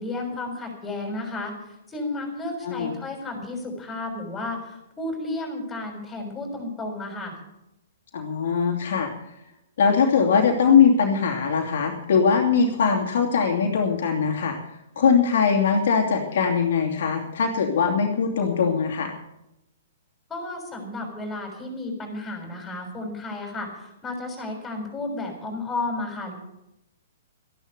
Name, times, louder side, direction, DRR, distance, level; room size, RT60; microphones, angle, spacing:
voice 1, 0.0-1.5 1.9-7.4 20.3-26.3, left 2 dB, 15° left, 2 dB, 6.5 m, -32 dB
voice 2, 8.1-9.1 9.8-14.6 15.0-19.1, left 6 dB, 60° left, 1 dB, 2.5 m, -21 dB
14.5 x 11.5 x 6.6 m, 0.87 s
figure-of-eight pair, 120°, 0 cm